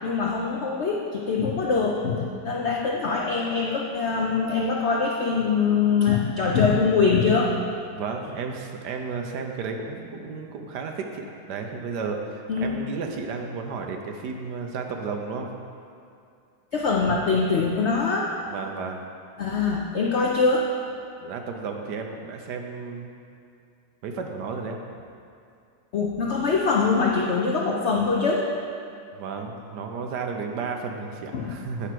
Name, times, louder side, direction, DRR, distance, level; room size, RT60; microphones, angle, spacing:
voice 1, 0.0-7.6 12.5-12.8 16.7-18.3 19.4-20.7 25.9-28.5 31.3-31.5, left 4 dB, 70° left, -2 dB, 0.6 m, -23 dB
voice 2, 7.9-15.5 18.5-19.0 21.2-23.1 24.0-24.8 29.1-31.9, right 5 dB, 70° right, 3 dB, 1.3 m, -33 dB
8.9 x 4.7 x 5.9 m, 2.5 s
omnidirectional pair, 2.0 m